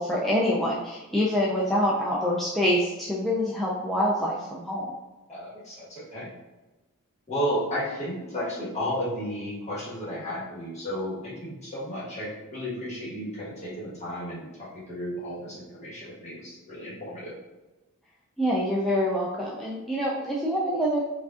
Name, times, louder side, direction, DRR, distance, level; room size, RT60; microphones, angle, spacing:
voice 1, 0.0-4.9 18.4-21.0, equal, ahead, -6 dB, 0.3 m, -26 dB
voice 2, 5.3-6.3 7.3-17.3, equal, 30° left, -8 dB, 1.3 m, -33 dB
4.7 x 2.5 x 2.4 m, 1.1 s
head